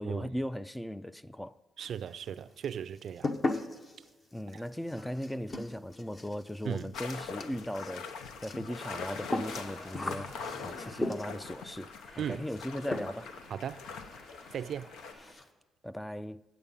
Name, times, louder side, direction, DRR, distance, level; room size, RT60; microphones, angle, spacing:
voice 1, 0.0-1.6 4.3-11.9 12.3-13.3 15.8-16.4, equal, 5° left, 0.3 m, -38 dB
sound 1, 1.8-2.4 2.6-11.5 12.5-12.7 12.9-13.4 13.7-13.8 14.1-14.2 14.5-14.7 15.0-15.5, left 2 dB, 30° left, 0.9 m, -38 dB
voice 2, 1.8-3.3 4.5-4.6 6.6-6.9 12.2-12.5 13.5-13.9 14.5-14.9, right 8 dB, 65° right, 0.4 m, -37 dB
sound 2, 6.9-15.1, left 5 dB, 85° left, 0.7 m, -43 dB
Traffic noise roadway noise, 8.8-15.3, left 1 dB, 55° left, 2.6 m, -52 dB
8.6 x 8.0 x 5.4 m
cardioid pair, 90°, 0 cm